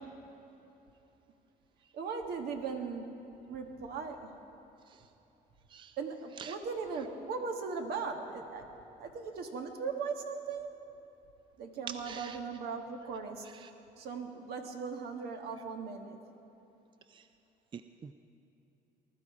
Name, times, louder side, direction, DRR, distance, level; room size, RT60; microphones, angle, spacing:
voice 1, 1.9-3.1 3.5-4.3 6.0-8.6 9.0-10.7 11.6-13.5 14.0-16.2, right 5 dB, 70° right, 4 dB, 1.6 m, -38 dB
voice 2, 17.7-18.1, right 7 dB, 30° right, 10 dB, 0.4 m, -46 dB
20.0 x 12.0 x 4.9 m, 3.0 s
cardioid pair, 110°, 17 cm